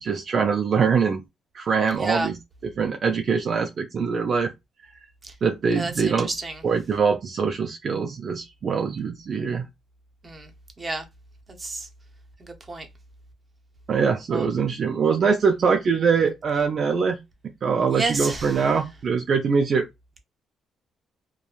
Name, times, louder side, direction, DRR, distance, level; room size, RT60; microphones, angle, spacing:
voice 1, 0.0-1.2 1.5-2.4 2.6-4.5 5.4-6.3 6.6-9.7 13.9-17.2 17.6-19.8, right 5 dB, 50° right, 0.4 m, -23 dB
voice 2, 2.0-2.3 5.2-5.3 5.7-6.5 10.2-10.5 10.8-11.0 11.6-11.9 12.4-12.9 14.3-14.4 17.9-18.5, right 2 dB, 25° right, 0.7 m, -30 dB
2.9 x 2.2 x 2.3 m
cardioid pair, 90°, 0 cm